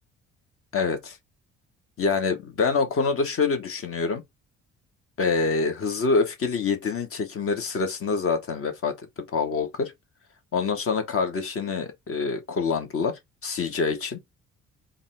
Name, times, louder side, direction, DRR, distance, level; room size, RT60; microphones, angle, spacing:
voice 1, 0.7-1.2 2.0-4.2 5.2-9.9 10.5-14.2, left 4 dB, 40° left, 0.9 m, -26 dB
3.7 x 2.3 x 3.4 m
figure-of-eight pair, 45°, 36 cm